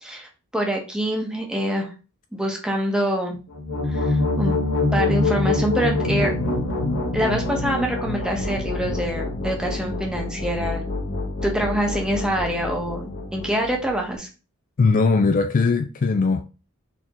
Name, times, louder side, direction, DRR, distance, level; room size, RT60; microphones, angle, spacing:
voice 1, 0.0-1.9 2.3-3.4 3.9-4.5 4.9-6.3 7.1-10.8 11.4-14.3, right 1 dB, 5° right, 1.0 m, -25 dB
sound 1, 3.5-14.1, left 2 dB, 60° left, 1.2 m, -26 dB
voice 2, 14.8-16.4, left 4 dB, 40° left, 0.3 m, -19 dB
4.3 x 3.6 x 3.0 m
head